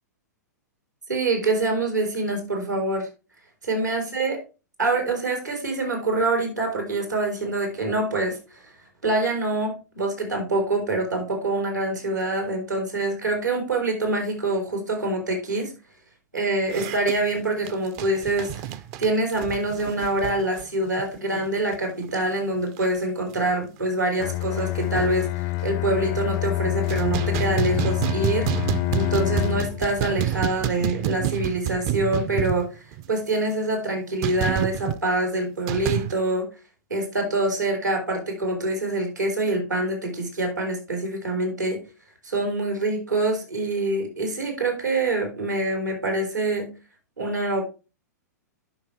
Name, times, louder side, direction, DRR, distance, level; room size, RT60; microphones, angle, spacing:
voice 1, 1.1-3.1 3.6-4.4 4.8-8.6 9.0-15.7 16.3-18.5 19.0-32.8 33.1-36.5 36.9-41.8 42.2-46.7 47.2-47.6, right 2 dB, 90° right, 2 dB, 3.7 m, -25 dB
sound 1, 16.7-21.8 22.0-22.2 22.6-23.0 23.3-23.4 23.9-24.0 24.2-25.3 25.9-26.4 26.7-33.1 34.2-35.0 35.7-36.1, right 11 dB, 35° right, 0.5 m, -29 dB
Bowed string instrument, 24.2-29.9, left 19 dB, 40° left, 0.4 m, -27 dB
11.0 x 5.5 x 3.2 m, 0.31 s
figure-of-eight pair, 105°, 9 cm